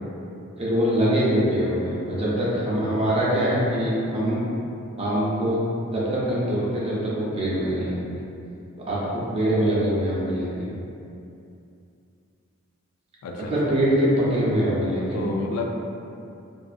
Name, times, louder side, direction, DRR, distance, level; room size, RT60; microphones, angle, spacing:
voice 1, 0.6-4.4 5.0-5.6 5.9-7.9 8.9-10.6 13.5-15.2, equal, 30° right, -7 dB, 0.6 m, -23 dB
voice 2, 13.2-13.8 14.9-15.7, left 3 dB, 85° left, 1 dB, 0.3 m, -31 dB
2.6 x 2.4 x 2.4 m, 2.6 s
head